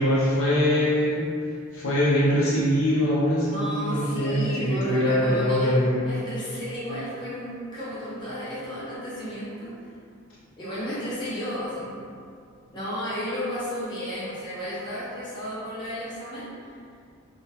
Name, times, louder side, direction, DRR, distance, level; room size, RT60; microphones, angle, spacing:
voice 1, 0.0-1.4 1.7-6.1, equal, 70° left, -7 dB, 0.6 m, -23 dB
voice 2, 3.5-5.8 6.0-9.7 10.6-12.1 12.7-16.5, equal, 20° left, -10 dB, 0.5 m, -33 dB
2.2 x 2.0 x 2.8 m, 2.3 s
head